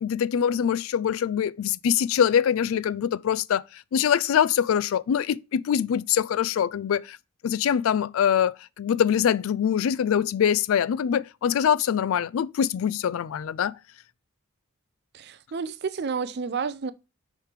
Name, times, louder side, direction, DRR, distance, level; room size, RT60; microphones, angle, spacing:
voice 1, 0.0-7.2 7.4-13.7, left 8 dB, 75° left, 0.3 m, -24 dB
voice 2, 15.1-16.9, right 5 dB, 50° right, 0.4 m, -30 dB
6.5 x 3.2 x 4.9 m
head